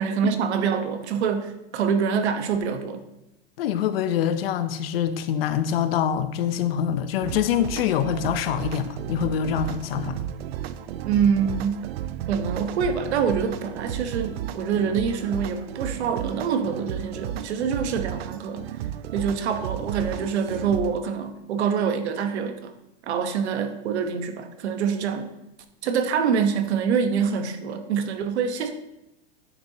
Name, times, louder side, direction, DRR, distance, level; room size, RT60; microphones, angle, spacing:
voice 1, 0.0-3.0 11.0-11.9 12.3-18.7 19.1-22.7 23.0-25.3 25.8-28.7, right 6 dB, 80° right, 7 dB, 1.1 m, -25 dB
voice 2, 3.6-10.2, left 9 dB, 65° left, 11 dB, 0.7 m, -25 dB
sound 1, 7.2-21.0, right 11 dB, 65° right, 0.5 m, -34 dB
9.7 x 6.9 x 2.8 m, 0.91 s
supercardioid pair, 165°, 32 cm